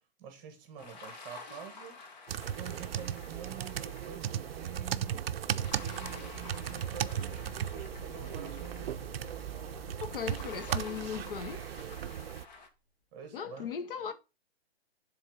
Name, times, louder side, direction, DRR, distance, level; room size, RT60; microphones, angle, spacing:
voice 1, 0.2-2.0 2.4-5.3 5.8-9.0 10.5-10.9 13.1-14.1, right 7 dB, 20° right, 1.3 m, -47 dB
sound 1, 0.8-12.7, left 3 dB, 45° left, 1.2 m, -50 dB
sound 2, 2.3-12.5, right 10 dB, 70° right, 0.5 m, -37 dB
sound 3, 4.4-12.6, right 2 dB, 20° left, 1.4 m, -50 dB
voice 2, 10.0-11.7 13.3-14.1, left 7 dB, 60° left, 0.9 m, -38 dB
7.1 x 3.6 x 4.9 m
hypercardioid pair, 165°, 31 cm